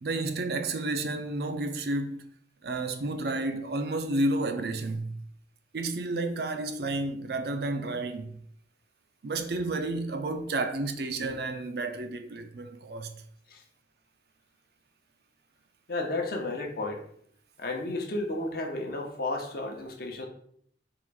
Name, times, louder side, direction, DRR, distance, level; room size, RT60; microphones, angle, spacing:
voice 1, 0.0-2.2 2.6-5.2 5.7-8.4 9.2-13.1, right 2 dB, 60° right, 0.4 m, -31 dB
voice 2, 15.9-17.0 17.6-20.3, left 2 dB, 55° left, 0.7 m, -32 dB
3.6 x 2.5 x 4.6 m
head